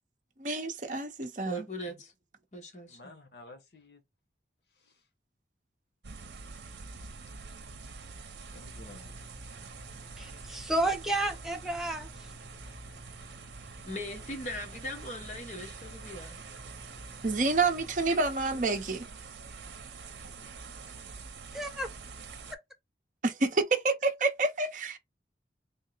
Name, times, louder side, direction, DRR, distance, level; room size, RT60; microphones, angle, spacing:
voice 1, 0.4-1.6 17.2-19.0 23.2-25.0, right 3 dB, 45° right, 0.7 m, -28 dB
voice 2, 1.4-2.1 2.5-3.1 13.8-16.4, equal, 40° left, 1.1 m, -39 dB
voice 3, 2.9-4.0 4.8-4.9 8.5-9.1 20.2-20.5, left 2 dB, 70° left, 0.9 m, -52 dB
sound 1, 6.0-22.6, right 4 dB, 80° right, 0.7 m, -46 dB
sound 2, 8.6-18.0, left 1 dB, 25° left, 1.2 m, -56 dB
voice 4, 10.2-12.1 21.5-21.9, right 1 dB, ahead, 0.6 m, -31 dB
3.6 x 2.0 x 3.9 m
head